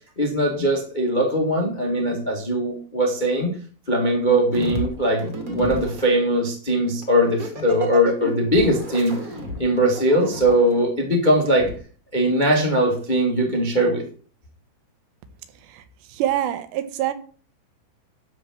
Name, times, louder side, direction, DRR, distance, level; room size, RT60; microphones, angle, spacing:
voice 1, 0.2-3.5 3.9-9.1 9.6-11.7 12.1-14.0, equal, 45° left, 0.5 m, -20 dB
sound 1, 4.5-6.1 7.0-10.8 11.6-11.7, equal, 30° right, 1.7 m, -32 dB
voice 2, 16.1-17.1, right 12 dB, 90° right, 3.1 m, -25 dB
12.0 x 4.2 x 7.5 m
omnidirectional pair, 4.8 m